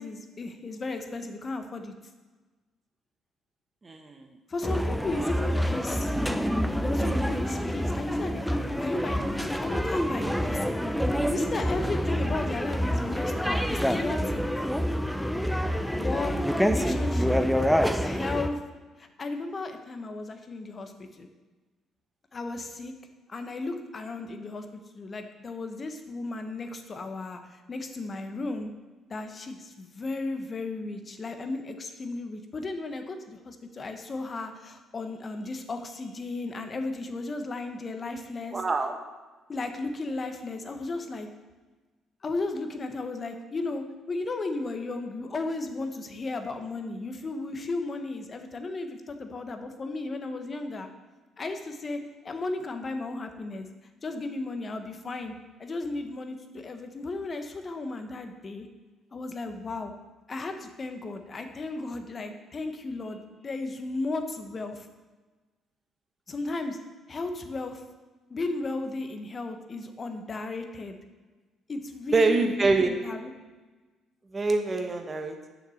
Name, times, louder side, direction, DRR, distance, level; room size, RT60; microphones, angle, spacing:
voice 1, 0.0-1.9 4.5-6.1 6.9-11.0 11.3-14.4 15.9-17.5 18.0-18.6 19.0-21.3 22.3-22.9 23.3-28.7 29.1-38.6 39.5-41.3 42.2-50.9 51.4-52.0 52.2-53.7 54.0-55.3 55.6-58.7 59.1-59.9 60.3-64.9 66.3-66.8 67.1-67.8 68.3-71.0 71.7-73.3, left 3 dB, 40° left, 6 dB, 1.3 m, -35 dB
voice 2, 3.8-4.3 5.1-5.5 16.8-16.9 38.5-38.9 72.1-72.9 74.3-75.5, right 3 dB, 30° right, 4 dB, 1.1 m, -26 dB
sound 1, 4.6-18.5, equal, 5° left, 0.8 m, -27 dB
7.4 x 6.5 x 6.5 m, 1.2 s
hypercardioid pair, 55°, 0 cm